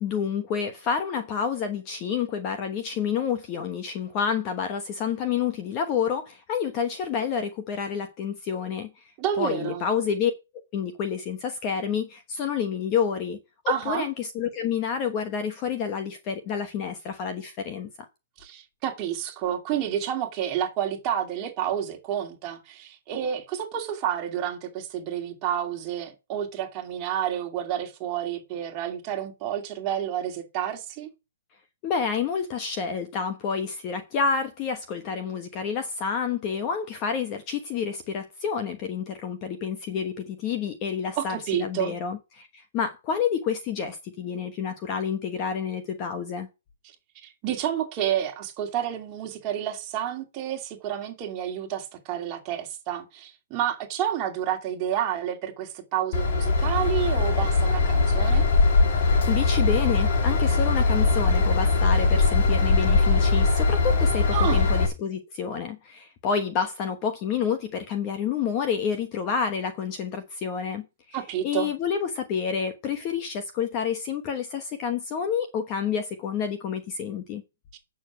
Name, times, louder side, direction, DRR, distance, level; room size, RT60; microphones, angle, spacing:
voice 1, 0.0-8.9 9.4-10.3 10.7-13.4 13.6-18.1 31.8-46.5 59.3-71.2 71.4-77.4, left 7 dB, 25° left, 1.1 m, -29 dB
voice 2, 9.2-9.9 13.7-14.1 18.4-31.1 41.2-42.0 47.2-58.5 64.3-64.7 71.1-71.7, right 10 dB, 20° right, 2.6 m, -30 dB
Train / Engine, 56.1-64.9, left 3 dB, 45° left, 2.3 m, -21 dB
8.6 x 6.7 x 6.2 m
hypercardioid pair, 170°, 0 cm